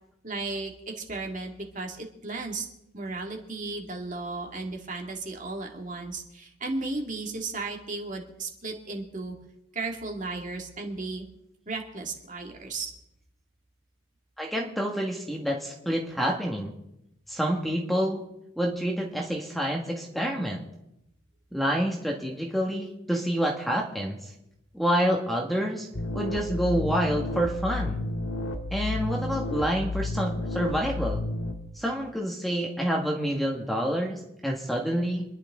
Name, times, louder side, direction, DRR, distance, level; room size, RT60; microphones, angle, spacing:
voice 1, 0.2-2.7 2.9-9.4 9.7-11.2 11.7-12.9, right 3 dB, 40° right, 2 dB, 2.1 m, -35 dB
voice 2, 14.4-16.7 17.3-18.2 18.6-20.6 21.5-24.2 24.7-25.9 26.1-28.0 28.7-31.2 31.7-35.2, equal, ahead, 0 dB, 1.6 m, -28 dB
sound 1, 25.9-31.5, left 2 dB, 90° left, 1.6 m, -31 dB
26.5 x 11.0 x 3.6 m, 0.86 s
head